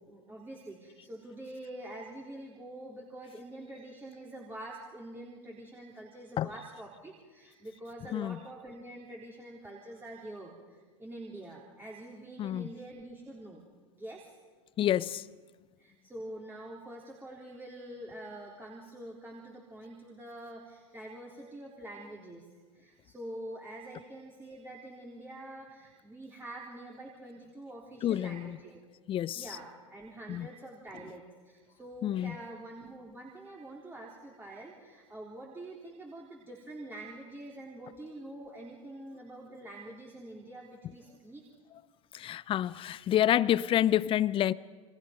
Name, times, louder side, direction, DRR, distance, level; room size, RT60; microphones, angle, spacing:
voice 1, 0.1-13.6 13.9-14.3 15.8-22.5 22.7-28.8 29.3-41.4, right 1 dB, 15° right, 4.0 m, -46 dB
voice 2, 14.8-15.2 28.0-28.4 29.1-29.4 30.3-30.5 32.0-32.3 42.1-44.5, left 11 dB, 30° left, 0.7 m, -28 dB
29.0 x 26.0 x 5.3 m
hypercardioid pair, 85°, 17 cm